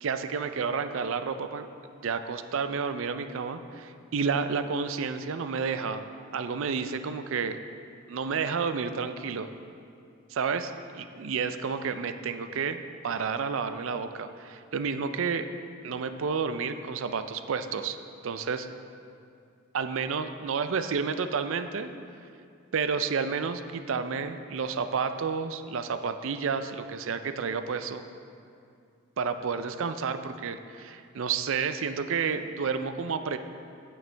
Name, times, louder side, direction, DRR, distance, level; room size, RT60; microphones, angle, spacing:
voice 1, 0.0-1.7 2.0-6.1 6.3-7.6 8.1-9.5 10.3-15.5 15.8-18.0 18.2-18.7 19.7-21.9 22.7-28.0 29.2-33.4, right 5 dB, 60° right, 10 dB, 0.4 m, -30 dB
9.0 x 8.6 x 3.4 m, 2.4 s
head